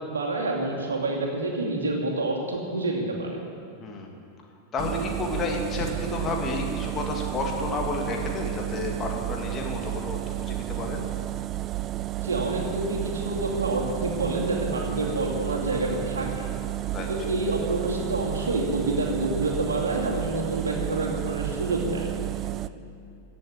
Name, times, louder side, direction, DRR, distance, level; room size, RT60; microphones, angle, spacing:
voice 1, 0.1-3.3 12.2-16.5 17.1-22.1, right 2 dB, 70° right, -1 dB, 2.6 m, -28 dB
voice 2, 4.7-10.2 10.5-11.1 14.9-15.1 16.9-17.1, left 3 dB, 25° left, 1 dB, 2.1 m, -31 dB
sound 1, 4.8-22.7, right 14 dB, 30° right, 0.4 m, -32 dB
16.0 x 7.8 x 8.5 m, 2.5 s
figure-of-eight pair, 90°, 0 cm